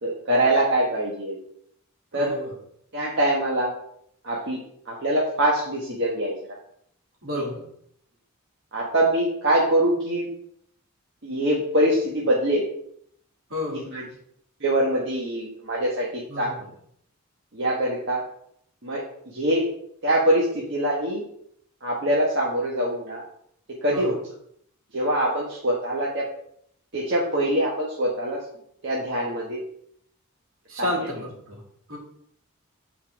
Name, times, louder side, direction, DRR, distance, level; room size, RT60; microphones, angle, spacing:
voice 1, 0.0-1.4 2.1-2.3 2.9-3.7 4.2-4.6 4.9-6.3 7.3-7.4 8.7-10.3 11.2-12.6 13.7-14.0 14.6-16.5 17.5-18.2 18.8-19.6 20.0-21.2 21.8-23.2 23.8-24.2 24.9-26.2 26.9-28.4 28.8-29.6 30.8-30.9, right 1 dB, 55° right, -4 dB, 1.4 m, -24 dB
voice 2, 2.1-2.5 7.2-7.6 13.5-13.9 16.3-16.6 23.9-24.1 30.7-31.6 31.9-32.0, left 1 dB, 70° right, -2 dB, 2.7 m, -31 dB
8.3 x 4.2 x 4.7 m, 0.70 s
head